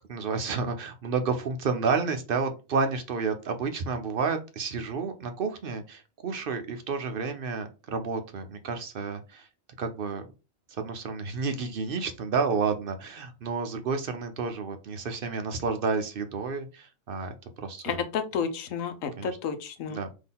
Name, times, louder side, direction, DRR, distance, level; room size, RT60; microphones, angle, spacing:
voice 1, 0.1-9.5 9.8-10.2 10.7-18.0 19.2-19.3 19.9-20.1, right 5 dB, 55° right, 8 dB, 0.7 m, -30 dB
voice 2, 17.8-20.0, left 6 dB, 80° left, 9 dB, 1.1 m, -31 dB
3.7 x 3.0 x 4.1 m, 0.30 s
omnidirectional pair, 1.4 m